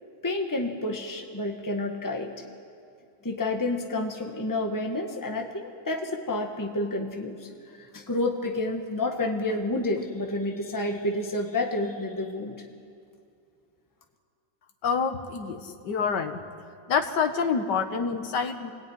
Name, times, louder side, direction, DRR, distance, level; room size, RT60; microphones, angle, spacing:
voice 1, 0.2-2.3 3.2-7.4 7.9-12.6, left 2 dB, 10° left, 3 dB, 1.5 m, -29 dB
voice 2, 14.8-16.4 16.9-18.7, left 5 dB, 70° left, 6 dB, 1.9 m, -27 dB
25.5 x 17.5 x 9.6 m, 2.4 s
omnidirectional pair, 1.9 m